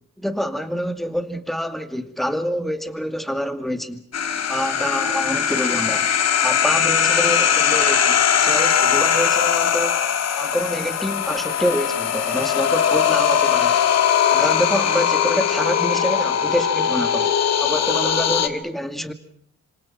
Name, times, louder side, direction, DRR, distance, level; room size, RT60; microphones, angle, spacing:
voice 1, 0.2-4.0 4.5-6.1 6.4-10.0 10.4-13.8 14.3-17.3 17.6-19.1, equal, ahead, 7 dB, 2.3 m, -26 dB
sound 1, 4.1-18.5, left 8 dB, 60° left, 2.0 m, -20 dB
27.0 x 25.5 x 6.1 m, 0.65 s
cardioid pair, 90°, 30 cm